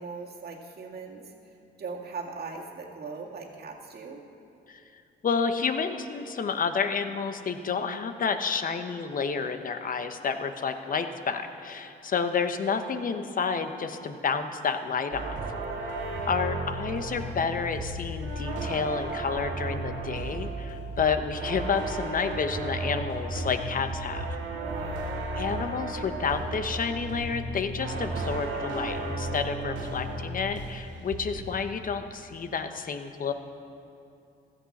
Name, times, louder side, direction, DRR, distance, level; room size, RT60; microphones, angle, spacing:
voice 1, 0.0-4.2 15.8-16.3 24.5-25.2, right 4 dB, 50° right, 0 dB, 2.0 m, -40 dB
voice 2, 5.2-15.4 16.3-24.3 25.3-33.3, left 5 dB, 45° left, 8 dB, 1.0 m, -30 dB
sound 1, 15.1-30.8 31.1-31.5, right 2 dB, 75° right, 2.1 m, -34 dB
15.5 x 13.5 x 4.3 m, 2.6 s
cardioid pair, 90°, 20 cm